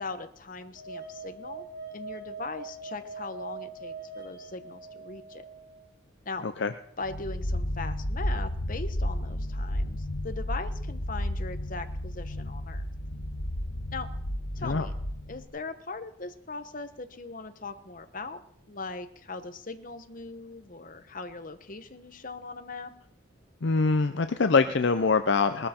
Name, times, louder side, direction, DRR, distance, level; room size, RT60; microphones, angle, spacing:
voice 1, 0.0-1.7 1.9-5.5 6.2-6.5 7.0-12.8 13.9-14.1 14.5-14.9 15.3-18.4 18.7-22.9, left 3 dB, 40° left, 9 dB, 1.0 m, -40 dB
sound 1, 0.8-5.8, right 3 dB, 45° right, 3.4 m, -42 dB
sound 2, 7.0-15.4, left 1 dB, 75° left, 1.4 m, -32 dB
voice 2, 23.6-25.7, left 4 dB, 55° left, 9 dB, 0.6 m, -24 dB
19.5 x 13.0 x 4.4 m, 0.70 s
head